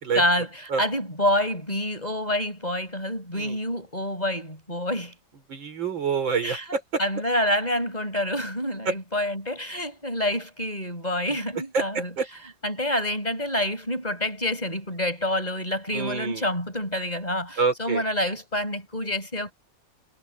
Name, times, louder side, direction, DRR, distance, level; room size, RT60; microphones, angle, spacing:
voice 1, 0.1-5.1 6.4-6.6 7.0-12.1 12.6-19.5, left 1 dB, 20° left, 6.5 m, -27 dB
voice 2, 5.5-7.0 8.9-9.0 11.7-12.3 15.9-16.4 17.6-18.0, right 5 dB, 75° right, 4.8 m, -27 dB
omnidirectional pair, 2.1 m